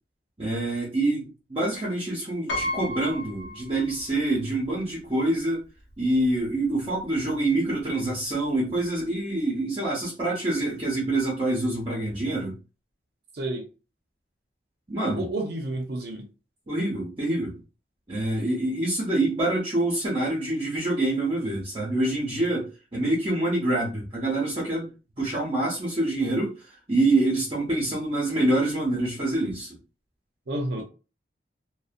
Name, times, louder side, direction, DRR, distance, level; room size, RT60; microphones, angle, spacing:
voice 1, 0.4-1.2 1.5-5.6 6.0-12.6 14.9-15.3 16.7-17.6 18.1-24.9 25.2-29.8, right 2 dB, 30° right, 0.7 m, -26 dB
Piano, 2.5-4.3 4.6-4.7 5.9-6.0 6.3-6.5, left 1 dB, 90° left, 0.7 m, -33 dB
voice 2, 13.3-13.7 15.1-16.2 30.5-30.8, right 1 dB, 70° right, 0.5 m, -30 dB
2.6 x 2.1 x 2.4 m
head